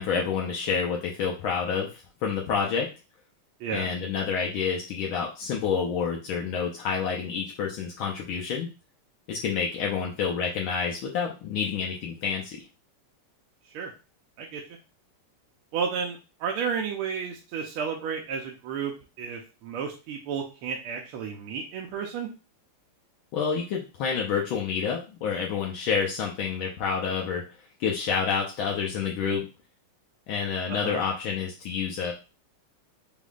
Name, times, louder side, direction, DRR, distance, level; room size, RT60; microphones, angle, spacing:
voice 1, 0.0-2.9 3.7-8.7 9.3-12.6 23.3-27.4 27.8-29.5 30.3-32.1, left 6 dB, 75° left, -1 dB, 1.5 m, -28 dB
voice 2, 15.7-18.9 19.2-22.3 30.7-31.0, right 6 dB, 80° right, 1 dB, 1.6 m, -32 dB
5.2 x 3.6 x 2.4 m, 0.30 s
omnidirectional pair, 2.4 m